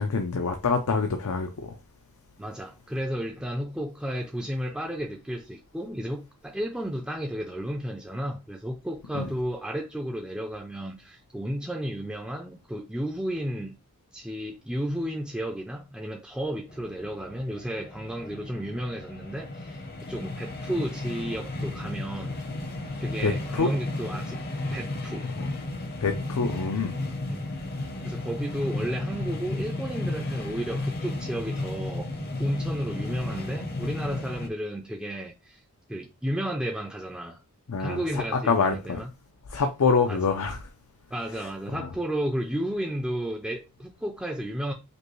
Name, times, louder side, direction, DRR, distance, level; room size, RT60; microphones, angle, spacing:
voice 1, 0.0-1.8 9.1-9.3 23.2-23.7 25.4-25.5 26.0-27.0 37.7-39.0 39.5-40.6 41.7-41.9, left 4 dB, 85° left, 0.5 m, -26 dB
voice 2, 2.4-13.8 14.1-22.4 23.0-24.4 24.7-25.3 27.3-27.4 28.0-32.1 32.4-35.6 35.9-37.4 37.8-39.1 40.1-40.2 41.1-44.7, equal, 5° right, 0.3 m, -33 dB
sound 1, 16.7-34.5, left 2 dB, 45° left, 0.7 m, -34 dB
5.2 x 2.2 x 3.0 m
head